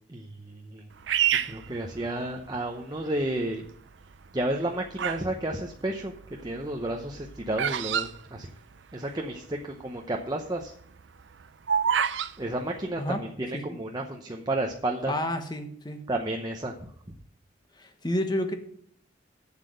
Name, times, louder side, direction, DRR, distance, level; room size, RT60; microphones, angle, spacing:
voice 1, 0.1-0.9 1.4-3.7 4.3-6.1 6.4-8.5 8.9-10.7 12.4-15.1 16.1-16.9, right 1 dB, 20° right, 2 dB, 0.7 m, -32 dB
Bird vocalization bird call bird song, 1.1-2.6 3.2-3.7 4.4-5.3 5.6-9.1 9.4-9.5 9.6-10.0 10.4-12.3, right 9 dB, 75° right, 0.5 m, -28 dB
voice 2, 15.1-16.0 17.8-18.6, left 1 dB, 20° left, 7 dB, 1.2 m, -30 dB
7.6 x 7.4 x 7.7 m, 0.63 s
head